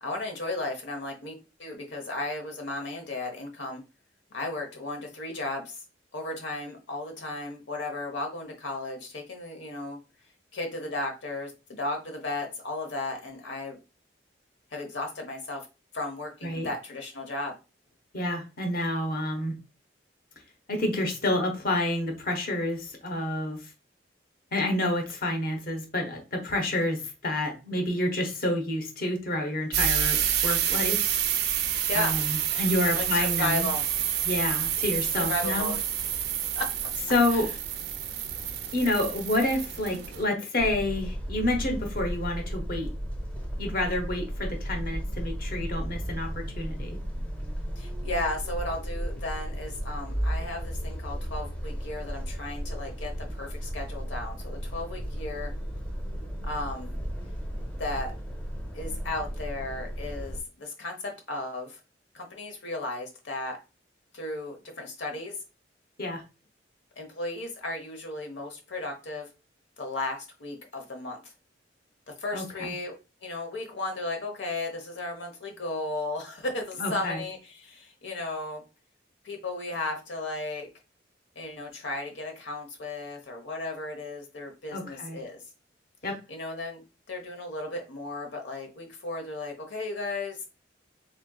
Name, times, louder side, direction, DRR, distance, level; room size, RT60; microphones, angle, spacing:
voice 1, 0.0-3.8 4.3-5.8 6.1-10.0 10.5-13.8 14.7-15.7 15.9-17.5 31.9-32.2 33.0-33.8 35.2-35.8 36.5-36.7 37.3-37.4 47.8-55.5 56.4-57.0 57.8-58.2 58.7-61.8 62.1-63.6 64.1-65.3 67.0-69.3 69.8-71.3 72.1-72.9 73.2-78.6 79.2-80.7 81.4-85.4 86.3-90.5, left 2 dB, 85° left, 3 dB, 0.9 m, -35 dB
voice 2, 18.1-19.5 20.7-23.7 24.5-31.0 31.9-33.7 34.2-35.7 37.1-37.5 38.7-42.9 43.6-47.0 66.0-66.2 72.3-72.7 76.8-77.2 84.7-85.2 86.0-86.2, left 1 dB, 55° left, 4 dB, 1.0 m, -29 dB
sound 1, 29.7-40.2, right 9 dB, 60° right, 0.6 m, -28 dB
sound 2, 40.6-60.4, equal, 5° left, 0.7 m, -34 dB
4.3 x 3.7 x 2.3 m, 0.29 s
head